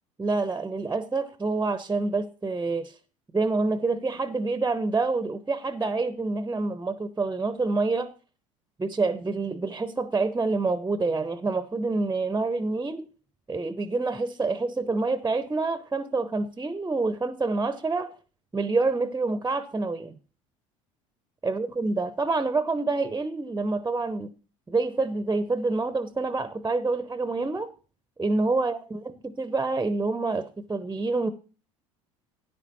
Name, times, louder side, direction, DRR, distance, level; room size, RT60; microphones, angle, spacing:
voice 1, 0.2-2.9 3.3-8.1 8.8-13.1 13.5-18.1 18.5-20.2 21.4-24.3 24.7-27.7 28.2-31.3, right 3 dB, 15° right, 0.7 m, -27 dB
13.5 x 9.8 x 3.0 m
hypercardioid pair, 80°, 17 cm